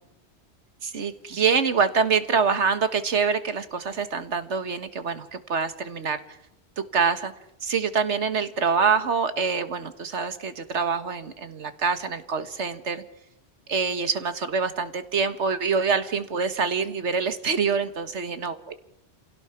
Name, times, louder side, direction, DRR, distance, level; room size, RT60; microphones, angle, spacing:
voice 1, 0.8-6.2 6.8-7.3 7.6-13.0 13.7-18.6, right 5 dB, 90° right, 11 dB, 1.8 m, -25 dB
27.5 x 17.0 x 5.9 m, 0.79 s
omnidirectional pair, 1.2 m